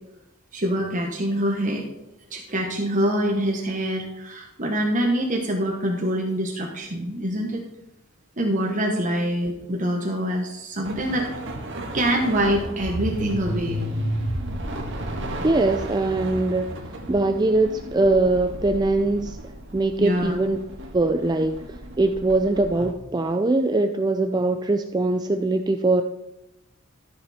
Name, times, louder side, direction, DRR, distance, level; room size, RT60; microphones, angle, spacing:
voice 1, 0.5-1.9 2.3-7.6 8.4-11.3 11.9-13.8 20.0-20.3, right 1 dB, 40° right, 0 dB, 1.2 m, -25 dB
sound 1, 10.8-22.9, right 1 dB, 60° right, 1.8 m, -33 dB
voice 2, 15.4-16.7 17.1-19.4 19.7-20.6 20.9-21.6 22.0-26.0, right 2 dB, 20° right, 7 dB, 0.4 m, -22 dB
13.5 x 7.0 x 4.3 m, 0.95 s
head